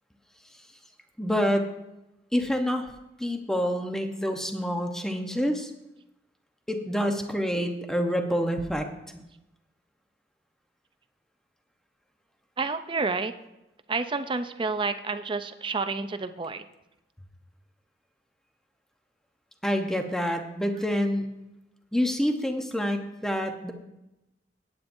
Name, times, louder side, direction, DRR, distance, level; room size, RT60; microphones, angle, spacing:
voice 1, 1.2-1.7 2.3-2.9 3.2-5.7 6.7-8.9 9.1-9.2 19.6-21.3 21.9-23.7, equal, 5° left, 4 dB, 0.9 m, -27 dB
voice 2, 12.6-13.3 13.9-16.7, right 4 dB, 30° right, 10 dB, 0.5 m, -29 dB
17.0 x 8.8 x 2.6 m, 0.93 s
head